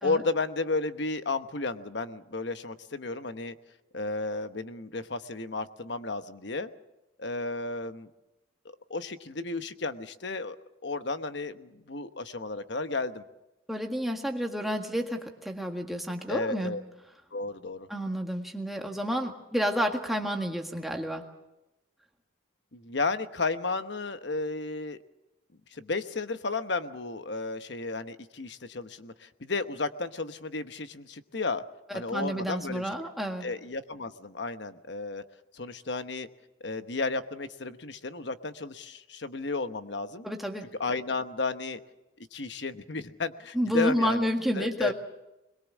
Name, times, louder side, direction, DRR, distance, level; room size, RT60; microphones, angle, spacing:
voice 1, 0.0-3.6 3.9-6.7 7.2-8.1 8.9-10.6 10.8-13.2 16.3-16.8 17.3-17.9 22.7-25.0 25.7-31.6 31.9-32.9 33.4-35.2 35.5-36.3 36.6-40.3 40.8-41.8 42.3-44.9, left 3 dB, 65° left, 10 dB, 1.1 m, -33 dB
voice 2, 13.7-16.7 17.9-21.2 31.9-33.5 40.2-40.7 43.5-44.9, equal, ahead, 2 dB, 1.7 m, -30 dB
22.5 x 22.0 x 7.3 m, 0.94 s
head